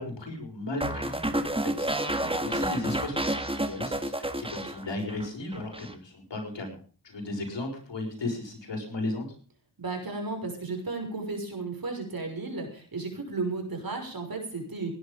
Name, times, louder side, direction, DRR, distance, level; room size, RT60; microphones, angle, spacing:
voice 1, 0.0-6.8 7.0-9.2, left 2 dB, 85° left, 3 dB, 6.1 m, -35 dB
sound 1, 0.8-5.3 5.5-5.9, right 1 dB, 15° right, 2.0 m, -30 dB
voice 2, 2.1-2.6 9.8-14.9, right 3 dB, 55° right, 3 dB, 6.2 m, -34 dB
18.0 x 11.0 x 5.4 m, 0.41 s
wide cardioid pair, 70°, 42 cm